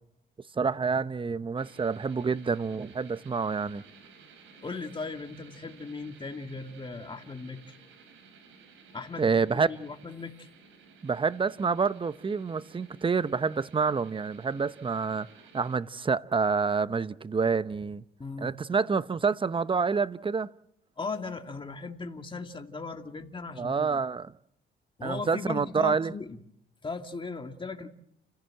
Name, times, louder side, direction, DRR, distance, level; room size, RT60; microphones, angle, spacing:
voice 1, 0.6-3.8 9.2-9.7 11.0-15.3 15.5-18.0 18.4-20.5 23.6-24.3 25.0-26.1, right 5 dB, 25° right, 0.8 m, -28 dB
sound 1, 1.6-15.8, right 5 dB, 85° right, 5.3 m, -55 dB
voice 2, 4.6-7.8 8.9-10.5 18.2-18.5 21.0-24.0 25.0-26.4 26.8-27.9, left 4 dB, 25° left, 2.2 m, -38 dB
29.5 x 15.5 x 7.8 m
cardioid pair, 90°, 20 cm